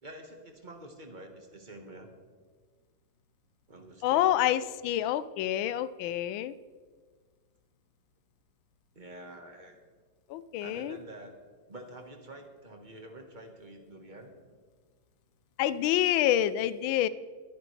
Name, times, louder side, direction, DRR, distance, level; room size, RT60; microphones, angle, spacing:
voice 1, 0.0-2.1 3.7-4.5 5.0-5.1 8.9-9.8 10.6-11.4 11.7-14.3, right 1 dB, 25° right, 3 dB, 1.3 m, -47 dB
voice 2, 4.0-6.5 10.3-11.0 15.6-17.1, left 12 dB, 80° left, 16 dB, 1.3 m, -27 dB
22.0 x 10.0 x 3.3 m, 1.5 s
omnidirectional pair, 2.3 m